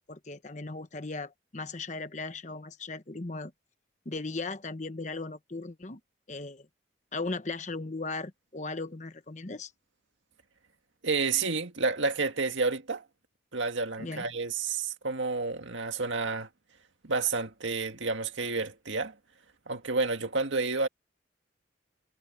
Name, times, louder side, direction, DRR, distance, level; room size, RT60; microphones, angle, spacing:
voice 1, 0.1-3.5 4.0-6.0 6.3-6.7 7.1-9.7 14.0-14.2, left 3 dB, 40° left, 1.0 m, -37 dB
voice 2, 11.0-13.0 13.5-16.5 17.0-19.2 19.7-20.9, right 4 dB, 80° right, 1.9 m, -30 dB
head